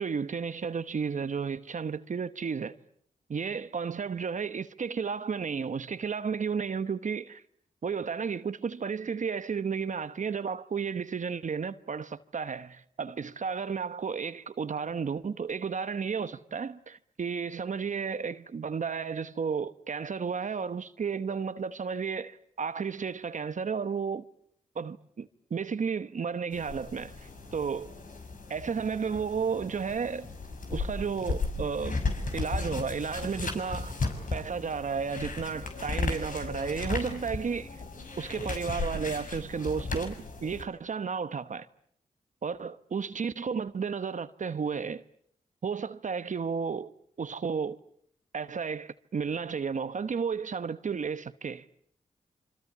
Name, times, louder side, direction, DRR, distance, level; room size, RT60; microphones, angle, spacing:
voice 1, 0.0-2.8 3.3-7.4 7.8-24.3 24.7-27.9 28.5-30.3 30.7-32.0 32.3-34.0 34.3-37.8 38.2-41.7 42.4-45.0 45.6-46.9 47.2-47.8 48.3-51.6, right 6 dB, 60° right, 1.1 m, -33 dB
sound 1, 26.5-40.6, left 3 dB, 65° left, 6.4 m, -35 dB
27.0 x 25.5 x 8.5 m
cardioid pair, 50°, 15 cm